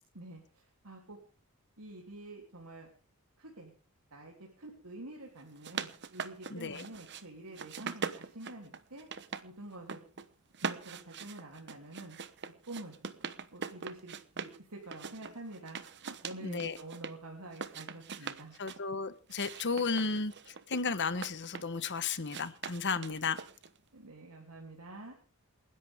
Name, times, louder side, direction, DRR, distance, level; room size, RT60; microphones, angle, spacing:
voice 1, 0.1-1.2 1.8-2.9 3.4-3.7 4.1-9.1 9.4-10.0 10.6-12.2 12.7-12.9 13.5-18.5 23.9-25.1, right 2 dB, 85° right, -1 dB, 3.3 m, -47 dB
sound 1, 5.4-7.2 7.5-9.4 9.7-10.2 10.5-14.6 14.9-17.1 17.5-18.8 19.3-21.8 22.3-23.8, right 6 dB, 50° right, 1.1 m, -42 dB
voice 2, 6.5-6.8 16.4-16.8 18.6-20.3 20.7-23.4, left 4 dB, 55° left, 13 dB, 1.2 m, -33 dB
28.0 x 11.0 x 3.7 m, 0.38 s
head